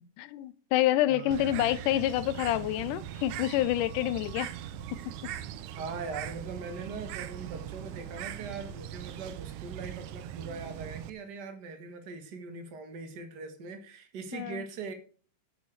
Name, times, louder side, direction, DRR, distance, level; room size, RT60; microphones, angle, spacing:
voice 1, 0.2-4.5 5.1-5.3 14.3-14.7, left 13 dB, 90° left, 2.3 m, -28 dB
voice 2, 1.1-1.7 5.8-14.9, right 4 dB, 40° right, 1.7 m, -41 dB
Bird, 1.3-11.1, right 11 dB, 80° right, 2.2 m, -40 dB
9.5 x 7.1 x 6.2 m
omnidirectional pair, 3.6 m